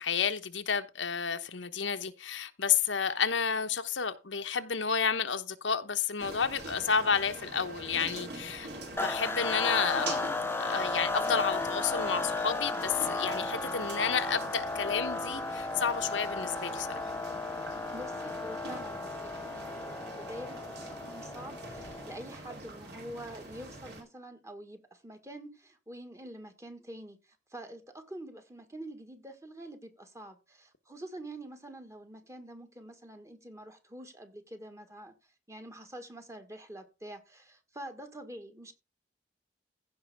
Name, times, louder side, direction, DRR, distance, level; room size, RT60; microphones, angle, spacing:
voice 1, 0.0-10.3 10.6-17.1, left 6 dB, 80° left, 1.0 m, -31 dB
sound 1, 6.2-24.0, right 2 dB, 60° right, 3.5 m, -44 dB
sound 2, 9.0-22.4, left 3 dB, 10° left, 0.5 m, -35 dB
voice 2, 17.9-38.7, right 1 dB, 15° right, 1.6 m, -46 dB
15.5 x 5.6 x 3.5 m
head